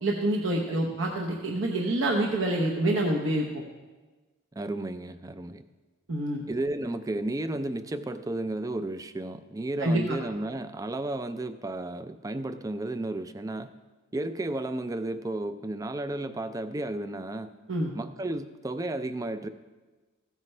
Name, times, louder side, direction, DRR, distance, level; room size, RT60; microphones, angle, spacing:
voice 1, 0.0-3.6 6.1-6.4 9.8-10.2 17.7-17.9, right 1 dB, 65° right, -1 dB, 0.9 m, -27 dB
voice 2, 4.5-5.6 6.5-13.7 14.1-17.5 17.9-19.5, right 2 dB, 15° right, 11 dB, 0.3 m, -33 dB
15.0 x 9.0 x 3.3 m, 1.3 s
head